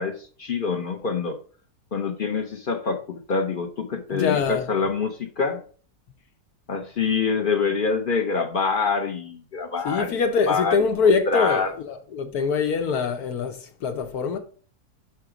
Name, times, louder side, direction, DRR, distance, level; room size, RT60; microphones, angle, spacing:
voice 1, 0.0-1.4 1.9-5.6 6.7-10.2 10.5-10.9 11.3-11.7, left 5 dB, 45° left, 0.7 m, -25 dB
voice 2, 4.1-4.7 9.8-14.4, left 5 dB, 75° left, 1.3 m, -24 dB
5.9 x 5.7 x 4.9 m
omnidirectional pair, 1.7 m